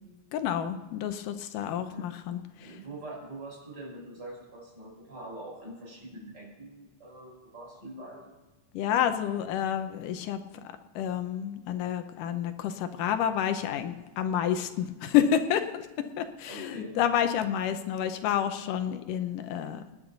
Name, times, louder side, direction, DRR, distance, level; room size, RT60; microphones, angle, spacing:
voice 1, 0.3-2.8 8.7-10.4 11.0-15.9 16.2-19.8, left 9 dB, 80° left, 8 dB, 2.4 m, -29 dB
voice 2, 2.6-8.4 16.5-17.0, right 2 dB, 30° right, -2 dB, 5.4 m, -44 dB
25.5 x 10.5 x 4.0 m, 1.2 s
omnidirectional pair, 3.7 m